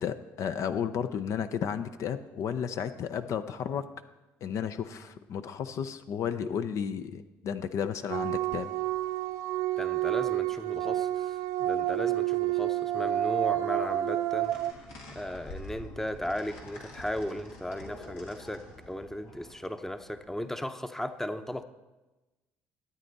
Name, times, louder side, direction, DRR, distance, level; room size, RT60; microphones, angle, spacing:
voice 1, 0.0-3.9 4.4-8.7, left 8 dB, 60° left, 10 dB, 0.5 m, -33 dB
sound 1, 8.1-14.7, right 14 dB, 80° right, 0.4 m, -29 dB
voice 2, 9.8-14.5 15.1-21.6, left 1 dB, 5° left, 10 dB, 0.7 m, -36 dB
sound 2, 14.3-20.4, left 1 dB, 90° left, 2.0 m, -47 dB
12.5 x 8.7 x 4.0 m, 1.1 s
supercardioid pair, 75°, 6 cm